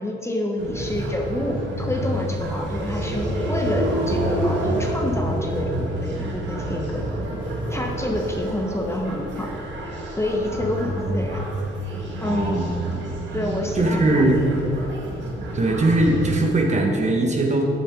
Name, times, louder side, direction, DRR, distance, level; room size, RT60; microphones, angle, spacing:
voice 1, 0.0-7.0 7.7-9.5 10.1-11.4 12.2-14.9, left 1 dB, 15° left, 0 dB, 1.1 m, -28 dB
sound 1, 0.6-16.4, right 1 dB, 65° right, 1.9 m, -28 dB
voice 2, 10.9-11.4 12.2-12.8 13.7-14.4 15.5-17.6, right 2 dB, 35° right, 1 dB, 1.6 m, -21 dB
13.0 x 7.7 x 3.9 m, 2.9 s
cardioid pair, 90°, 20 cm